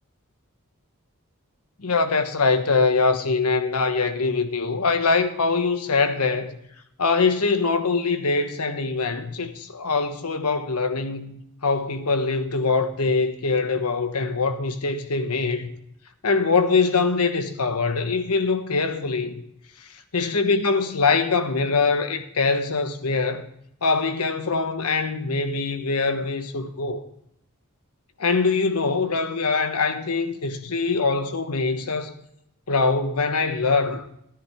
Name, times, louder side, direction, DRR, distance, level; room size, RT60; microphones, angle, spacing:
voice 1, 1.8-6.5 7.0-15.7 16.2-19.4 20.1-23.4 23.8-27.0 28.2-32.1 32.7-34.1, left 4 dB, 85° left, 1.1 m, -23 dB
14.5 x 10.0 x 3.5 m
head